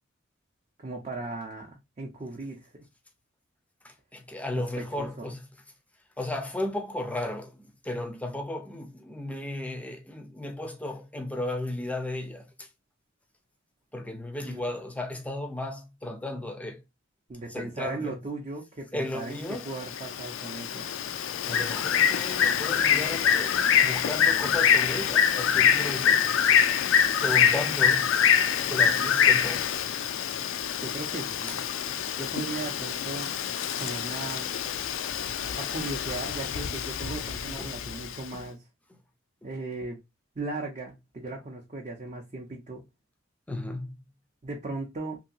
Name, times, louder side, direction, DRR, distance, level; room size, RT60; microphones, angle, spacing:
voice 1, 0.8-2.8 4.5-5.3 14.4-14.6 17.3-20.9 30.8-31.6 32.2-33.3 33.8-34.5 35.6-38.6 39.4-40.0 40.4-42.8 44.4-45.2, right 2 dB, 35° right, 0.6 m, -37 dB
voice 2, 3.8-5.5 6.2-12.7 13.9-16.8 17.5-18.2 18.9-19.7 20.7-20.8 21.5-26.3 27.0-28.2 28.6-29.7 31.5-31.6 37.6-37.7 38.3-38.4 43.5-44.0, left 1 dB, 5° left, 0.5 m, -35 dB
Bird, 19.5-38.2, left 8 dB, 70° left, 0.4 m, -25 dB
2.8 x 2.7 x 2.6 m
head